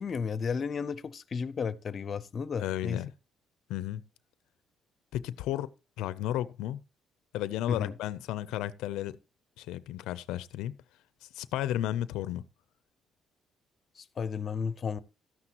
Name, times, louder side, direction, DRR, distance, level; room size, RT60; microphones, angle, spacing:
voice 1, 0.0-3.0 7.7-7.9 14.0-15.0, left 6 dB, 40° left, 0.6 m, -33 dB
voice 2, 2.6-3.1 3.7-4.0 5.1-5.7 6.0-6.8 7.3-9.2 9.6-10.7 11.2-12.4, left 13 dB, 90° left, 0.4 m, -33 dB
13.0 x 9.8 x 2.9 m
cardioid pair, 110°, 0 cm